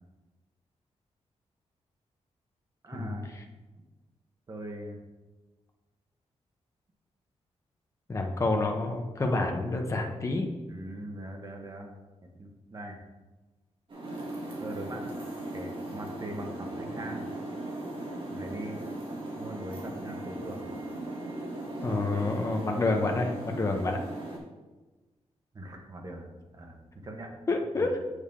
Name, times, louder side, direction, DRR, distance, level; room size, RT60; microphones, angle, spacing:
voice 1, 2.8-3.3 4.5-5.0 10.7-11.9 12.4-13.0 14.6-15.1 15.5-17.2 18.3-18.9 19.4-20.7 25.5-26.3 26.5-26.8 27.0-27.3 27.7-27.9, right 1 dB, 35° right, 2 dB, 1.2 m, -40 dB
voice 2, 8.1-10.5 21.8-24.0 27.5-27.9, left 2 dB, 25° left, 2 dB, 0.8 m, -28 dB
sound 1, 13.9-24.4, right 1 dB, 50° right, 2.4 m, -38 dB
8.1 x 6.5 x 3.7 m, 1.2 s
wide cardioid pair, 150°, 12 cm